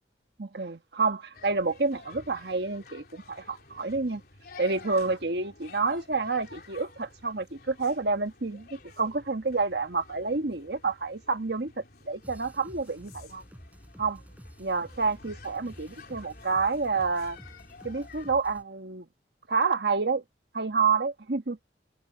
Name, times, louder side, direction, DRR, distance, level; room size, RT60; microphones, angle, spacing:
voice 1, 0.4-4.2 4.6-13.4 14.0-14.2 14.6-17.4 17.8-19.0 19.5-20.2 20.5-21.6, right 4 dB, 65° right, 1.4 m, -29 dB
sound 1, 1.3-18.3, left 3 dB, 55° left, 3.9 m, -51 dB
sound 2, 12.2-18.6, equal, 10° right, 3.8 m, -50 dB
head